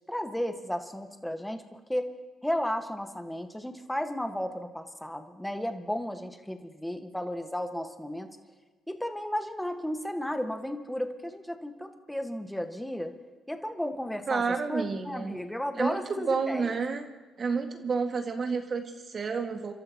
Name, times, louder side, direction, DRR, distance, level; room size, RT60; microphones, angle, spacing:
voice 1, 0.1-2.1 2.4-8.3 8.9-13.1 13.5-16.8, equal, 5° left, 6 dB, 1.5 m, -34 dB
voice 2, 14.3-15.3 15.7-17.0 17.4-19.7, right 5 dB, 45° right, 4 dB, 1.9 m, -30 dB
29.0 x 13.0 x 3.0 m, 1.3 s
supercardioid pair, 70°, 0 cm